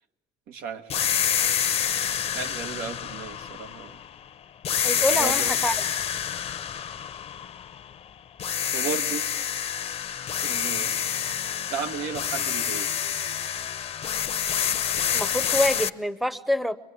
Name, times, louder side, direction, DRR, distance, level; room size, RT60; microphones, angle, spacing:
voice 1, 0.5-1.0 1.3-1.6 2.3-4.0 5.1-5.5 8.7-9.2 10.4-10.9 11.7-13.0, right 6 dB, 85° right, 6 dB, 1.4 m, -34 dB
sound 1, 0.9-4.2 4.6-8.0 8.4-15.9, left 9 dB, 40° left, 0.7 m, -27 dB
voice 2, 4.8-5.8 15.1-16.8, equal, ahead, 15 dB, 0.7 m, -26 dB
25.0 x 21.5 x 8.4 m, 1.1 s
cardioid pair, 110°, 15 cm